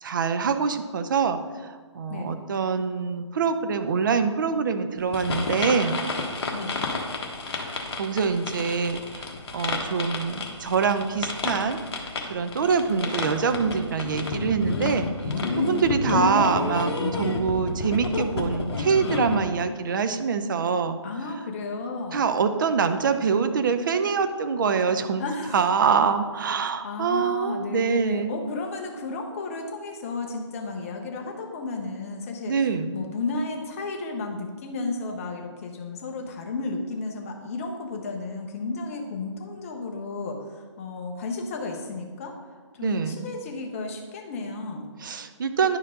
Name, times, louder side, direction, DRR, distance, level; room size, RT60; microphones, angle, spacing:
voice 1, 0.0-6.0 7.7-9.3 9.5-11.8 12.3-15.1 15.6-21.0 22.1-25.2 25.5-28.4 32.5-33.0 42.8-43.3 45.0-45.8, right 5 dB, 40° right, 9 dB, 0.5 m, -25 dB
sound 1, 5.1-19.4, left 3 dB, 55° left, 1.2 m, -30 dB
voice 2, 6.5-6.8 12.6-13.2 21.0-22.3 25.2-25.7 26.8-42.4 42.7-44.9, left 3 dB, 30° left, 2 dB, 0.8 m, -33 dB
10.5 x 4.6 x 3.7 m, 1.5 s
hypercardioid pair, 155°, 16 cm